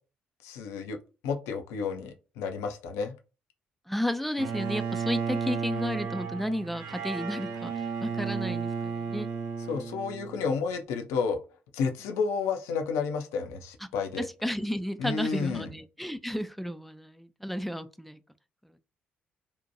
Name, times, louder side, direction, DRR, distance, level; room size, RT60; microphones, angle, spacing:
voice 1, 0.4-3.2 9.7-11.4 11.7-14.3 15.0-15.7, left 5 dB, 70° left, 0.4 m, -31 dB
voice 2, 3.9-9.3 14.2-18.2, equal, ahead, 0.3 m, -33 dB
Bowed string instrument, 4.4-10.5, right 6 dB, 70° right, 0.5 m, -33 dB
2.7 x 2.1 x 2.6 m
figure-of-eight pair, 45°, 5 cm